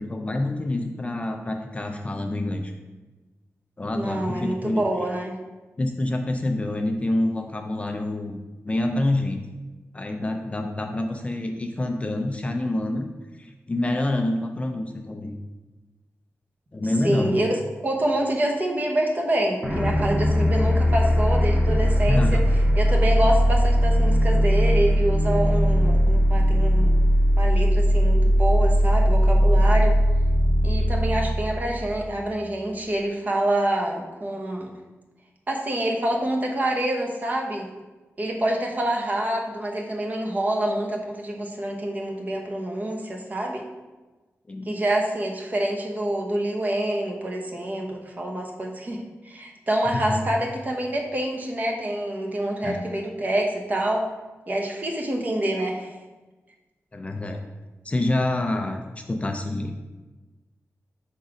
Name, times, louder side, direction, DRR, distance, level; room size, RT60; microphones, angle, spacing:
voice 1, 0.0-2.7 3.8-4.8 5.8-9.4 9.9-13.1 13.4-15.3 16.7-17.4 22.1-22.4 44.5-44.7 49.9-50.3 52.6-52.8 56.9-57.4 57.8-59.7, left 1 dB, 25° left, 4 dB, 0.4 m, -27 dB
voice 2, 3.9-5.4 17.0-22.4 22.8-26.9 27.4-30.0 30.6-34.7 35.5-37.7 38.2-43.6 44.7-54.1 54.5-55.9, right 1 dB, 30° right, 0 dB, 1.0 m, -26 dB
sound 1, 19.6-32.3, equal, 15° right, 1.4 m, -19 dB
5.9 x 4.0 x 4.9 m, 1.2 s
wide cardioid pair, 145°, 5 cm